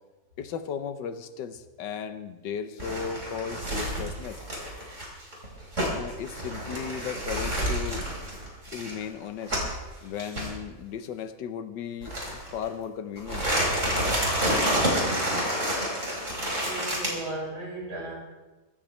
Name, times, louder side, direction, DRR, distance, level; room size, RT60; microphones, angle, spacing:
voice 1, 0.4-4.4 5.9-8.1 8.7-9.6 10.0-13.5, left 7 dB, 90° left, 10 dB, 1.6 m, -36 dB
sound 1, 2.8-9.8 10.2-10.5 12.0-12.7 13.2-17.1, equal, 45° right, 4.5 m, -29 dB
voice 2, 16.6-18.1, right 2 dB, 65° right, -4 dB, 6.1 m, -35 dB
23.5 x 13.5 x 3.3 m, 1.1 s
omnidirectional pair, 1.9 m